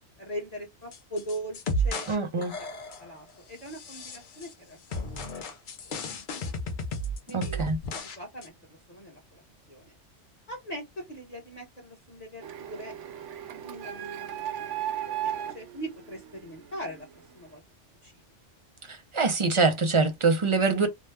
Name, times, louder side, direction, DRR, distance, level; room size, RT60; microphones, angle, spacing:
voice 1, 0.2-2.7 3.0-5.5 7.3-9.4 9.7-9.9 10.5-12.9 13.6-14.7 15.0-17.1 17.3-17.6 18.0-18.2, right 1 dB, 35° left, 1.0 m, -41 dB
sound 1, 0.9-2.2 2.4-3.1 3.7-4.5 4.9-8.2 8.4-8.5, equal, 50° left, 0.7 m, -33 dB
voice 2, 2.1-2.5 7.3-7.8 18.9-20.9, right 4 dB, 40° right, 0.4 m, -24 dB
Printer, 12.4-17.0, right 10 dB, 85° right, 0.9 m, -36 dB
2.7 x 2.2 x 3.3 m
omnidirectional pair, 1.2 m